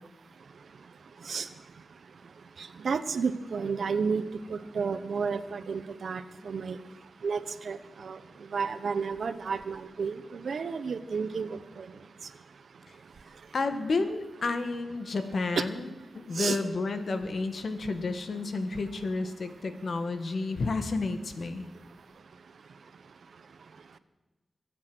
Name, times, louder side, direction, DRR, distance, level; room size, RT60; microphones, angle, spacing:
voice 1, 2.8-4.2 4.5-6.8 7.2-8.2 8.5-11.8 15.6-15.7 16.4-16.6, right 5 dB, 75° right, 0.9 m, -31 dB
voice 2, 13.5-21.7, left 3 dB, 65° left, 1.7 m, -31 dB
23.5 x 8.5 x 6.3 m
wide cardioid pair, 75°, 0 cm